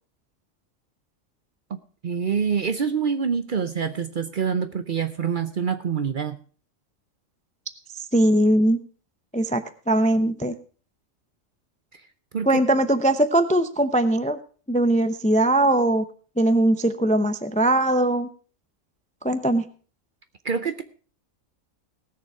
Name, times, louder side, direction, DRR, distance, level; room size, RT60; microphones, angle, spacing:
voice 1, 1.7-6.4 11.9-12.1 12.3-12.6 20.4-20.8, right 6 dB, 50° right, 10 dB, 0.7 m, -26 dB
voice 2, 7.9-8.8 9.3-9.6 9.9-10.5 12.5-14.4 14.7-16.0 16.4-18.3 19.2-19.6, right 1 dB, 10° left, 10 dB, 0.4 m, -20 dB
18.5 x 6.8 x 4.7 m, 0.40 s
omnidirectional pair, 1.4 m